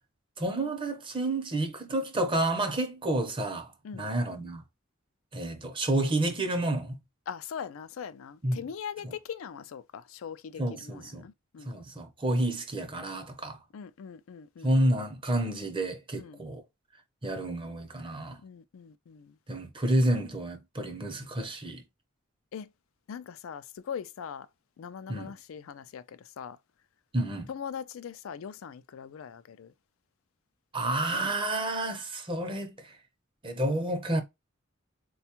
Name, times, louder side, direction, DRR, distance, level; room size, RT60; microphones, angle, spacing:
voice 1, 0.4-4.6 5.3-6.9 8.4-8.6 9.0-9.1 10.6-11.2 11.6-13.6 14.6-16.6 17.2-18.4 19.5-21.8 25.1-25.3 27.1-27.5 30.7-33.0 33.4-34.2, right 1 dB, 25° right, 0.7 m, -30 dB
voice 2, 7.3-11.8 13.7-14.8 16.2-16.4 18.4-19.4 22.5-22.7 23.1-24.5 24.8-26.6 27.5-29.7, left 7 dB, 85° left, 0.4 m, -41 dB
4.1 x 2.3 x 2.9 m
head